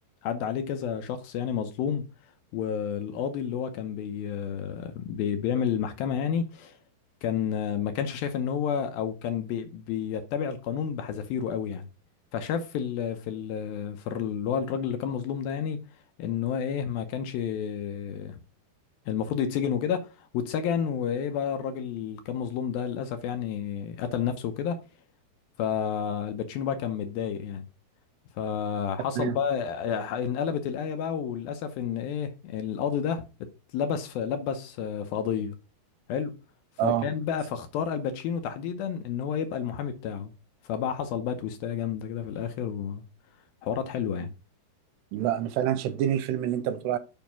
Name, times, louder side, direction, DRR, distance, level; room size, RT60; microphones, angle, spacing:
voice 1, 0.2-2.0 2.5-6.8 7.2-11.9 12.3-15.8 16.2-18.4 19.1-24.8 25.6-27.7 28.4-33.3 33.7-35.6 36.1-36.4 36.8-40.3 40.6-43.0 43.6-44.3, left 8 dB, 75° left, 2.4 m, -30 dB
voice 2, 45.1-47.0, right 11 dB, 85° right, 2.9 m, -27 dB
7.3 x 5.4 x 5.8 m
omnidirectional pair, 4.8 m